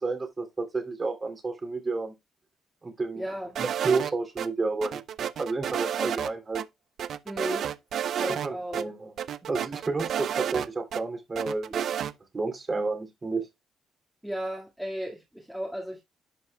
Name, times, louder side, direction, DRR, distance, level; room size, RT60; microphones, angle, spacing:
voice 1, 0.0-2.1 2.8-3.2 3.6-6.6 8.3-9.1 9.5-11.9 12.3-13.5, right 3 dB, 30° right, 2.7 m, -31 dB
voice 2, 3.1-3.6 7.2-7.7 8.2-8.8 14.2-16.0, equal, 5° right, 2.0 m, -34 dB
sound 1, 3.6-4.5 4.8-6.3 6.6-6.7 7.0-8.5 8.7-8.8 9.2-11.0 11.4-12.1, right 9 dB, 65° right, 0.5 m, -31 dB
11.0 x 5.5 x 2.3 m
cardioid pair, 90°, 0 cm